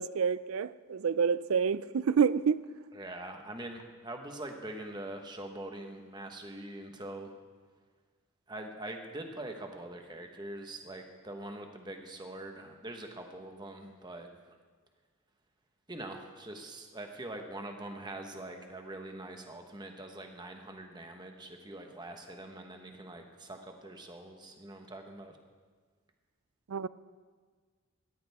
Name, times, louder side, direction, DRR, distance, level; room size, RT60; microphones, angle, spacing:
voice 1, 0.0-2.6 26.7-26.9, right 6 dB, 75° right, 17 dB, 0.4 m, -28 dB
voice 2, 2.9-7.3 8.5-14.3 15.9-25.4, right 1 dB, 20° right, 4 dB, 1.2 m, -43 dB
17.5 x 14.0 x 3.6 m, 1.5 s
head